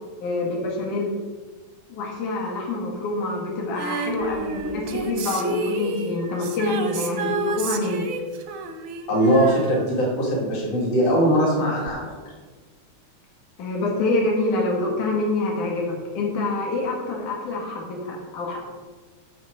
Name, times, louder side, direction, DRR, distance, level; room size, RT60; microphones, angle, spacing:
voice 1, 0.2-1.1 1.9-8.1 13.6-18.6, left 2 dB, 90° left, -2 dB, 3.2 m, -26 dB
Female singing, 3.8-10.7 11.9-12.0, right 3 dB, 65° right, 1.3 m, -31 dB
voice 2, 9.1-12.1, equal, 55° left, -3 dB, 3.8 m, -20 dB
12.0 x 6.8 x 4.9 m, 1.3 s
omnidirectional pair, 3.4 m